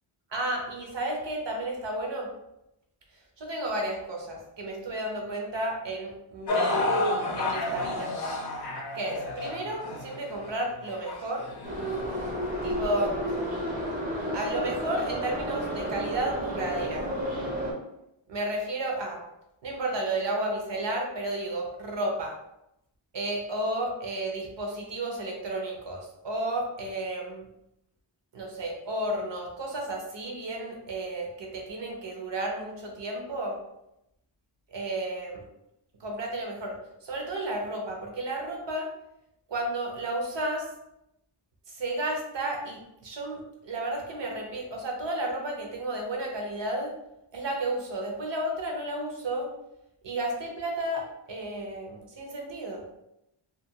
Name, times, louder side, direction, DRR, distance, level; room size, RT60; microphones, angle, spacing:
voice 1, 0.3-2.3 3.4-6.9 7.3-8.1 8.9-11.5 12.6-13.5 14.3-17.1 18.3-19.2 19.6-22.4 23.1-27.5 28.3-33.6 34.7-35.4 36.0-38.9 39.5-40.7 41.7-46.9 47.3-49.5 50.0-52.8, right 1 dB, 65° right, 0 dB, 0.7 m, -32 dB
sound 1, 6.5-12.7 13.4-13.5 14.2-14.3, left 1 dB, 55° left, 0.6 m, -31 dB
Subway metro underground, 11.6-17.7, equal, 20° right, 0.6 m, -32 dB
2.4 x 2.3 x 2.7 m, 0.85 s
wide cardioid pair, 110°, 48 cm